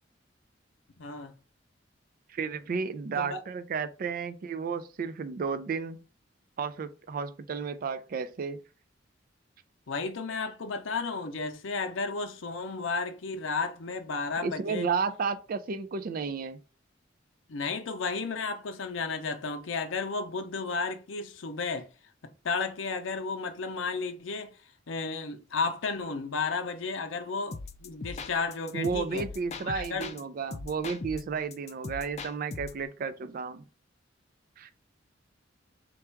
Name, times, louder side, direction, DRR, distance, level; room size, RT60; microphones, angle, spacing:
voice 1, 1.0-1.3 3.2-3.4 9.9-14.9 17.5-21.9 22.2-24.6 24.9-29.3 29.6-30.1, left 4 dB, 85° left, 0.6 m, -33 dB
voice 2, 2.3-6.0 6.6-8.6 14.4-16.6 28.7-33.6 34.6-34.7, right 5 dB, 45° right, 0.4 m, -32 dB
sound 1, 27.5-30.2 30.5-32.8, left 3 dB, 35° left, 0.3 m, -40 dB
3.4 x 2.3 x 4.4 m
head